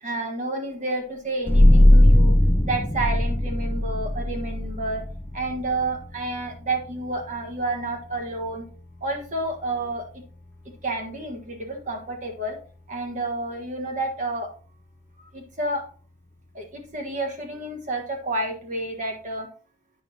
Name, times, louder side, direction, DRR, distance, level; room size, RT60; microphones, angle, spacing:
voice 1, 0.0-2.3 2.6-5.0 5.3-8.6 9.0-10.0 10.8-12.6 12.9-14.5 15.3-15.8 16.5-19.5, right 2 dB, 40° right, 3 dB, 1.4 m, -30 dB
sound 1, 1.5-12.7, left 1 dB, 10° left, 0.4 m, -22 dB
8.9 x 6.2 x 2.8 m, 0.40 s
head